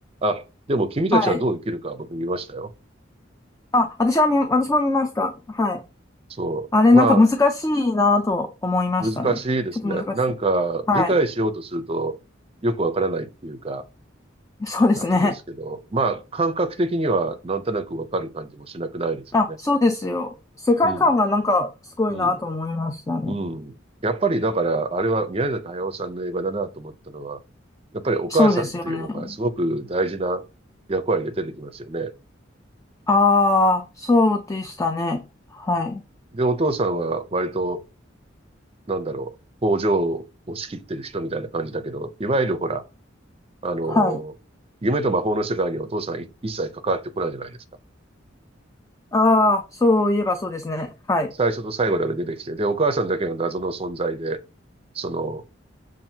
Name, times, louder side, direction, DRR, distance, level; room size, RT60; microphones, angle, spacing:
voice 1, 0.2-2.7 6.4-7.2 9.0-12.2 12.6-13.8 15.0-15.3 15.6-19.6 20.8-21.1 22.1-22.4 23.2-23.7 24.0-27.4 27.9-30.4 30.9-32.1 36.3-37.8 38.9-39.4 39.6-42.8 43.6-44.3 44.8-47.6 51.4-54.4 54.9-55.4, right 2 dB, 30° right, 0.6 m, -25 dB
voice 2, 3.7-5.8 6.7-9.4 9.8-10.0 10.9-11.1 14.6-15.4 19.3-23.4 28.3-29.3 33.1-35.2 35.5-36.0 43.9-44.2 49.1-51.3, left 2 dB, 15° left, 0.4 m, -20 dB
7.3 x 2.5 x 2.8 m
head